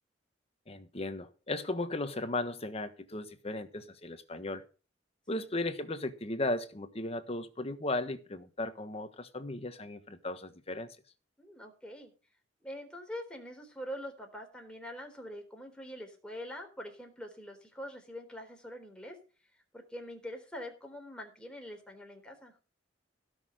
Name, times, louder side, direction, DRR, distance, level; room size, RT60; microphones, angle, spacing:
voice 1, 0.7-4.6 5.3-11.0, left 2 dB, 35° left, 1.3 m, -36 dB
voice 2, 11.4-12.1 12.6-19.2 19.7-22.6, equal, 5° left, 3.8 m, -44 dB
16.5 x 6.5 x 6.4 m
head